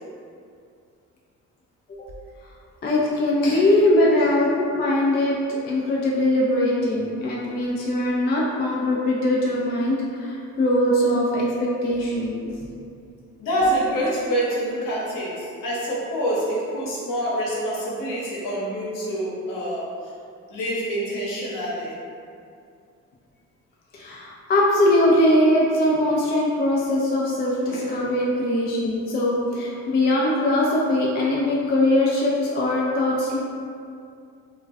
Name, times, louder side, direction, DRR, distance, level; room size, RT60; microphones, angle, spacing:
voice 1, 2.8-12.4 23.9-33.4, left 1 dB, 25° left, -4 dB, 0.4 m, -21 dB
voice 2, 13.4-19.9 20.5-22.0 27.7-27.9, equal, 55° left, -6 dB, 0.9 m, -26 dB
2.2 x 2.2 x 2.5 m, 2.4 s
hypercardioid pair, 45°, 40 cm